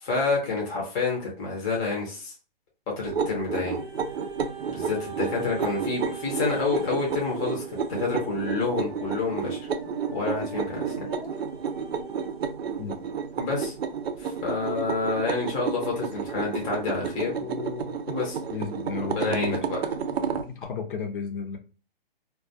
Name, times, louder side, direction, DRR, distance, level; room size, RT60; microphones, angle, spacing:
voice 1, 0.0-2.3 3.0-3.8 4.7-9.7 10.1-11.1 13.4-13.7 14.2-18.4 19.0-19.8, left 4 dB, 15° left, -1 dB, 0.5 m, -29 dB
sound 1, 3.1-20.5, right 6 dB, 90° right, 0.5 m, -31 dB
sound 2, 3.6-12.7 13.4-13.5, right 6 dB, 25° right, 0.6 m, -40 dB
voice 2, 18.5-19.7 20.3-21.6, left 5 dB, 60° left, 4 dB, 0.6 m, -33 dB
2.2 x 2.2 x 2.6 m, 0.36 s
hypercardioid pair, 140°, 30 cm